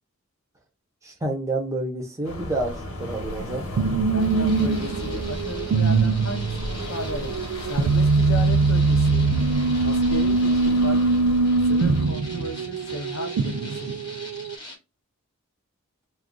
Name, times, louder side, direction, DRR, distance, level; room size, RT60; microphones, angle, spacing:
voice 1, 1.0-3.7, right 2 dB, 15° right, 0.8 m, -29 dB
sound 1, 2.2-12.1, equal, 80° left, 1.0 m, -34 dB
sound 2, 3.8-14.6, right 3 dB, 85° right, 0.3 m, -22 dB
voice 2, 4.1-9.3 9.8-11.0 11.6-13.9, left 1 dB, 65° left, 0.6 m, -35 dB
sound 3, 4.2-14.8, left 1 dB, 20° left, 0.9 m, -42 dB
2.4 x 2.3 x 3.6 m
head